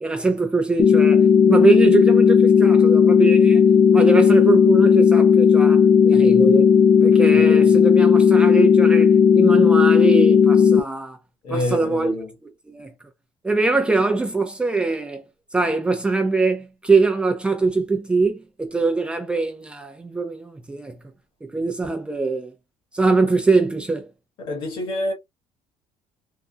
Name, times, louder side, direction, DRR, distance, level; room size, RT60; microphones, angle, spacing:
voice 1, 0.0-6.7 7.0-11.2 11.5-12.2 12.4-12.9 13.4-15.2 15.5-21.0 21.4-22.5 22.9-24.1, right 3 dB, 10° right, 0.4 m, -22 dB
sound 1, 0.8-10.8, left 7 dB, 40° left, 0.6 m, -14 dB
voice 2, 7.3-7.7 11.4-12.3 24.4-25.1, left 2 dB, 55° left, 1.8 m, -27 dB
3.7 x 2.2 x 2.4 m
cardioid pair, 155°, 10 cm